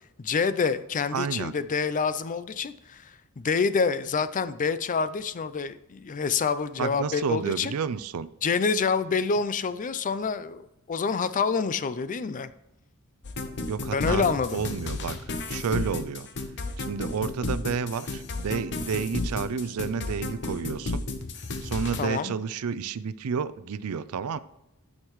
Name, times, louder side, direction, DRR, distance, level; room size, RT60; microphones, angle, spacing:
voice 1, 0.2-7.7 8.4-12.5 13.9-14.6 22.0-22.3, left 5 dB, 35° left, 14 dB, 0.4 m, -27 dB
voice 2, 1.1-1.5 6.8-8.3 13.7-15.2 15.5-16.3 16.8-21.0 21.6-24.4, right 6 dB, 75° right, 16 dB, 0.4 m, -30 dB
sound 1, 13.2-22.0, left 3 dB, 55° left, 0.9 m, -32 dB
9.7 x 6.5 x 3.1 m, 0.89 s
head